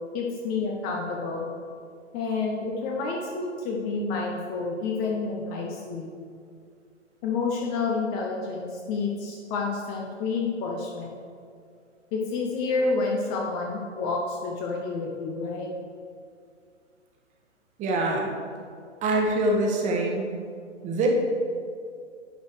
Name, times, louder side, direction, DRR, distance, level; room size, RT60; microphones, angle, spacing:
voice 1, 0.1-1.5 2.1-6.1 7.2-11.2 12.1-15.7, left 4 dB, 25° left, -1 dB, 0.8 m, -29 dB
voice 2, 17.8-18.3 19.0-20.3 20.8-21.1, right 2 dB, 20° right, 0 dB, 1.3 m, -24 dB
10.0 x 4.0 x 6.5 m, 2.2 s
figure-of-eight pair, 125°, 36 cm